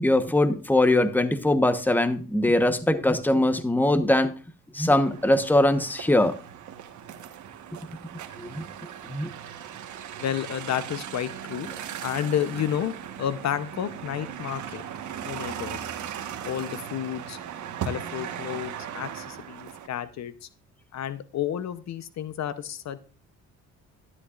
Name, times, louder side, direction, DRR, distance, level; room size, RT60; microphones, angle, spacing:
voice 1, 0.0-4.3 4.7-6.3 8.4-8.6 9.1-9.3, left 1 dB, 5° left, 10 dB, 1.0 m, -22 dB
sound 1, 5.0-19.9, right 9 dB, 70° right, 1.3 m, -38 dB
voice 2, 10.2-11.7 12.0-14.8 15.2-15.8 16.4-17.4 17.8-20.5 20.9-23.0, left 10 dB, 60° left, 14 dB, 0.8 m, -31 dB
12.5 x 11.0 x 2.4 m, 0.34 s
cardioid pair, 90°, 30 cm